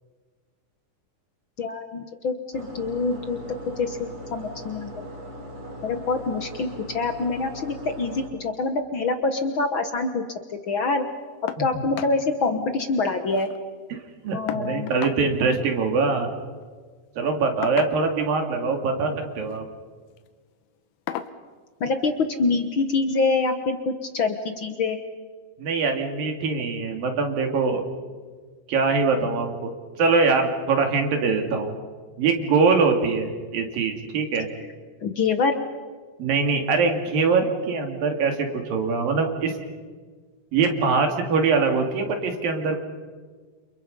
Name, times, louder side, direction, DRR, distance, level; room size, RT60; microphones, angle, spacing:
voice 1, 1.6-3.4 3.8-5.0 5.8-10.2 10.5-11.0 11.4-13.5 14.3-14.9 21.8-25.0 35.0-35.5, left 3 dB, 70° left, 7 dB, 1.2 m, -25 dB
sound 1, 2.5-8.3, equal, 25° right, 4.2 m, -39 dB
sound 2, 11.5-11.7 12.0-12.2 12.6-12.7 12.9-13.6 14.5-15.2 16.5-16.7 17.6-18.3 19.3-19.6 20.1-20.3 21.1-21.4 22.7-22.8 23.3-23.4, left 11 dB, 85° left, 2.9 m, -35 dB
voice 2, 14.2-16.3 17.2-19.6 25.6-27.8 28.7-29.7 30.0-31.7 32.2-34.5 36.2-39.6 40.5-42.8, right 4 dB, 70° right, 4 dB, 4.3 m, -23 dB
29.5 x 28.0 x 5.5 m, 1.5 s
omnidirectional pair, 4.2 m